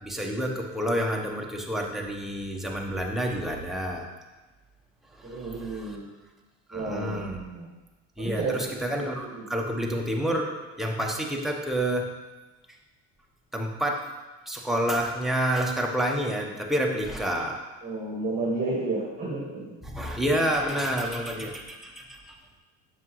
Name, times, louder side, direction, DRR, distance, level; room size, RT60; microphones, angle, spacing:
voice 1, 0.0-4.1 5.2-6.0 6.7-7.4 8.2-12.1 13.5-14.0 14.5-17.6 19.8-22.4, equal, ahead, -1 dB, 1.0 m, -29 dB
voice 2, 5.2-6.1 6.7-7.7 8.2-8.6 9.3-9.5 17.8-19.8, right 3 dB, 20° right, -6 dB, 1.8 m, -31 dB
7.2 x 6.1 x 3.1 m, 1.2 s
supercardioid pair, 95°, 37 cm